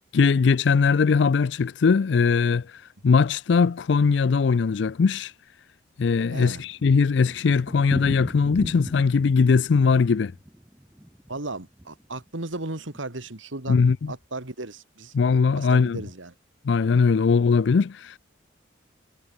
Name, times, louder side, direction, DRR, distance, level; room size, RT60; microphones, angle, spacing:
voice 1, 0.1-5.3 6.0-10.3 13.7-14.1 15.1-16.0 16.6-18.2, left 5 dB, 65° left, 0.4 m, -20 dB
Thunder, 6.0-12.3 12.5-12.6 12.9-13.0 13.3-13.4 13.9-14.2, equal, 10° right, 1.0 m, -38 dB
voice 2, 6.3-6.6 11.3-13.8 14.1-15.1 15.6-16.3, right 2 dB, 85° right, 2.4 m, -35 dB
head